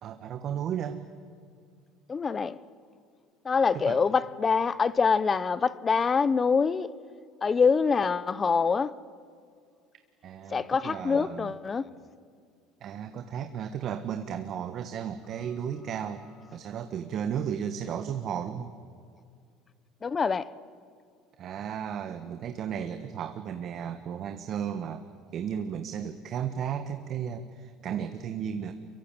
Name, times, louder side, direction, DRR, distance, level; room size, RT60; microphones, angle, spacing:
voice 1, 0.0-1.0 3.7-4.0 10.2-11.5 12.8-16.2 16.5-18.7 21.4-25.0 25.3-28.7, right 8 dB, 50° right, 1.4 m, -34 dB
voice 2, 2.1-2.6 3.4-6.9 7.4-8.9 10.5-11.9 20.0-20.5, left 5 dB, 30° left, 0.9 m, -25 dB
24.5 x 23.0 x 9.0 m
supercardioid pair, 90°, 0 cm